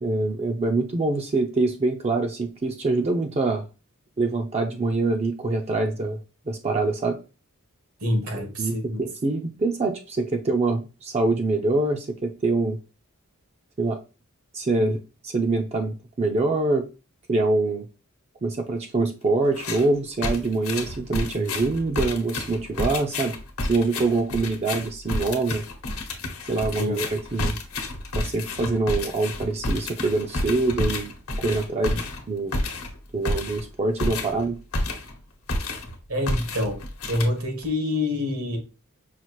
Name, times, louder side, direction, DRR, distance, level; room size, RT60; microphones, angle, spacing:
voice 1, 0.0-3.6 4.2-6.2 6.5-7.2 8.3-12.8 13.8-14.0 14.5-16.9 17.3-17.9 18.4-23.4 23.7-25.6 26.5-27.6 28.2-31.1 31.4-32.6 33.1-34.6, right 3 dB, 30° right, 0.4 m, -25 dB
voice 2, 8.0-9.0 26.8-27.0 36.1-36.8 37.1-38.6, left 1 dB, 80° right, 1.5 m, -26 dB
sound 1, 19.5-19.9 20.2-35.2 35.5-36.0 36.3-37.7, left 2 dB, 80° left, 1.0 m, -30 dB
5.6 x 2.4 x 3.0 m
head